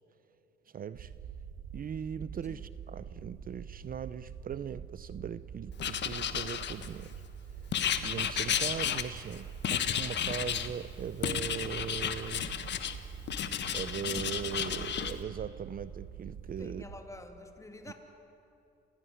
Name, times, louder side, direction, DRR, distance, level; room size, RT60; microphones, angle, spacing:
voice 1, 0.7-1.1 1.7-7.1 7.6-12.5 13.7-16.9 17.9-18.0, right 8 dB, 45° right, 15 dB, 0.6 m, -39 dB
sound 1, 0.9-17.0, right 7 dB, 80° right, 1.8 m, -46 dB
Writing, 5.8-7.1 7.7-9.3 9.6-10.7 11.2-13.0 13.3-15.1, left 9 dB, 65° left, 1.5 m, -32 dB
voice 2, 16.6-17.9, left 2 dB, 15° left, 5 dB, 2.8 m, -47 dB
27.5 x 17.0 x 9.8 m, 2.8 s
cardioid pair, 90°, 20 cm